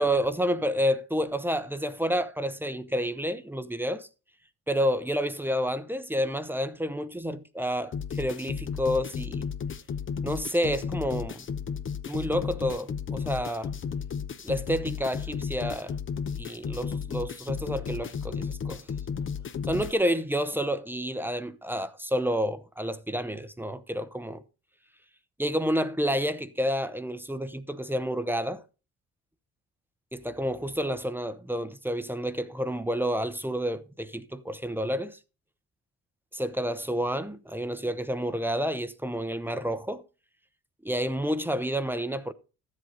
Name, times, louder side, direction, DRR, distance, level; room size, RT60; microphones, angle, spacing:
voice 1, 0.0-4.1 4.7-9.5 10.2-11.4 12.1-13.7 14.4-15.9 16.4-18.8 19.7-24.4 25.4-28.6 30.1-35.2 36.3-40.0 40.8-42.3, equal, 5° right, 0.7 m, -29 dB
sound 1, 7.9-19.9, left 6 dB, 40° left, 0.8 m, -34 dB
13.0 x 7.8 x 3.9 m
cardioid pair, 90°, 30 cm